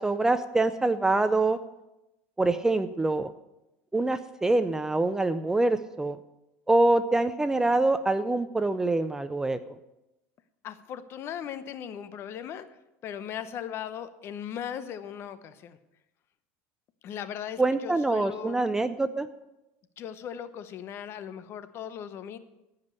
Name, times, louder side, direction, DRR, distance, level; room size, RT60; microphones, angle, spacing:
voice 1, 0.0-1.6 2.4-3.3 3.9-6.2 6.7-9.6 17.6-19.3, right 2 dB, 10° right, 12 dB, 0.4 m, -25 dB
voice 2, 10.6-12.7 13.0-15.8 17.0-18.7 20.0-22.4, left 9 dB, 40° left, 12 dB, 0.8 m, -38 dB
15.0 x 5.3 x 8.2 m, 0.95 s
supercardioid pair, 140°, 6 cm